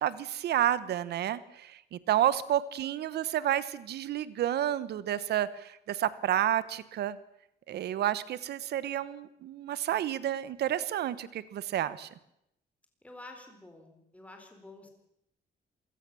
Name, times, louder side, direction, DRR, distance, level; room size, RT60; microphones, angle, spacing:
voice 1, 0.0-7.2 7.7-12.1, right 11 dB, 75° right, 17 dB, 1.1 m, -30 dB
voice 2, 13.0-14.9, left 2 dB, 10° left, 4 dB, 4.3 m, -49 dB
27.0 x 17.5 x 7.0 m, 0.80 s
cardioid pair, 140°, 17 cm